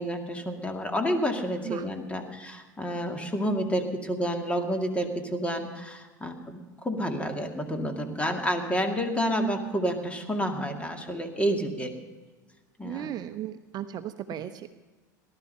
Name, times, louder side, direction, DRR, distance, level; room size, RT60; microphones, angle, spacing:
voice 1, 0.0-11.9 12.8-13.1, equal, 10° left, 4 dB, 2.2 m, -29 dB
voice 2, 12.8-14.7, right 11 dB, 40° right, 9 dB, 0.7 m, -36 dB
18.0 x 12.5 x 5.5 m, 1.3 s
hypercardioid pair, 90°, 10 cm